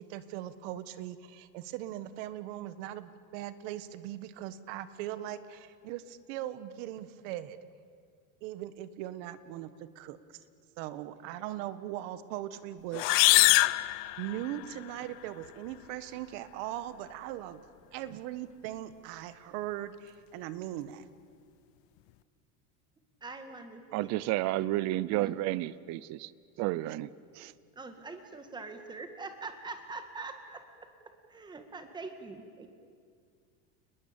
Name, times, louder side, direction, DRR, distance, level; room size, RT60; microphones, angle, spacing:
voice 1, 0.0-7.6 8.4-10.4 10.8-13.1 14.2-17.6 17.9-21.0, right 13 dB, 70° right, 13 dB, 1.5 m, -40 dB
sound 1, 12.9-14.8, left 22 dB, 80° left, 0.8 m, -24 dB
voice 2, 23.2-24.1 25.2-25.3 27.8-30.6 31.3-32.7, right 3 dB, 10° right, 7 dB, 1.8 m, -43 dB
voice 3, 23.9-26.3 26.6-27.1 27.4-27.5, right 16 dB, 45° right, 19 dB, 0.7 m, -31 dB
29.5 x 20.5 x 8.9 m, 2.1 s
cardioid pair, 165°, 38 cm